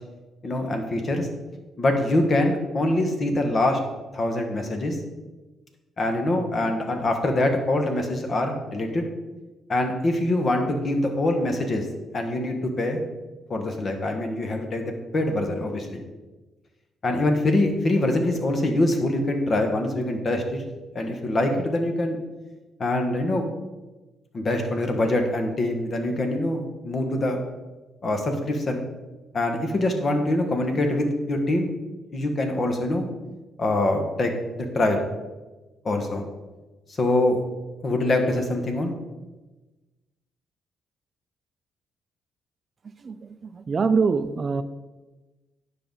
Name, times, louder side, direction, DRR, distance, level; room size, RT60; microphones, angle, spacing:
voice 1, 0.4-1.3 1.8-3.8 4.1-5.0 6.0-9.1 9.7-11.8 12.1-13.0 13.5-14.8 15.1-16.0 17.0-20.6 20.9-22.2 22.8-23.4 24.3-27.4 28.0-28.8 29.3-31.7 32.1-33.0 33.6-34.3 34.6-35.1 35.8-36.2 37.0-37.4 37.8-38.9, left 1 dB, 45° left, 4 dB, 1.4 m, -24 dB
voice 2, 43.0-44.6, right 5 dB, 40° right, 12 dB, 0.4 m, -24 dB
9.7 x 5.6 x 4.0 m, 1.2 s
cardioid pair, 90°, 0 cm